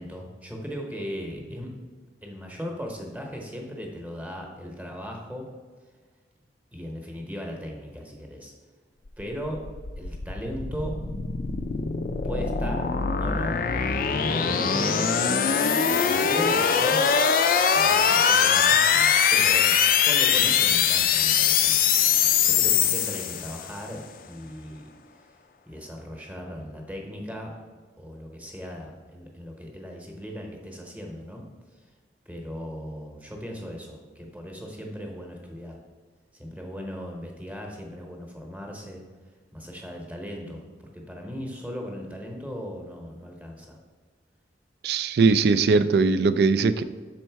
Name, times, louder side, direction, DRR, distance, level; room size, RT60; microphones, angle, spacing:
voice 1, 0.0-1.8 2.2-5.5 6.7-8.5 9.2-9.7 10.0-11.0 12.2-12.9 13.2-13.6 14.2-15.5 15.9-17.2 17.6-21.8 22.4-24.9 25.7-27.5 28.0-31.4 32.3-35.8 36.3-39.0 39.5-43.8, equal, 10° right, 0 dB, 0.9 m, -37 dB
sound 1, 9.6-23.8, left 7 dB, 50° left, 0.4 m, -22 dB
voice 2, 44.8-46.8, right 4 dB, 60° right, 13 dB, 0.3 m, -20 dB
6.3 x 4.3 x 4.5 m, 1.5 s
head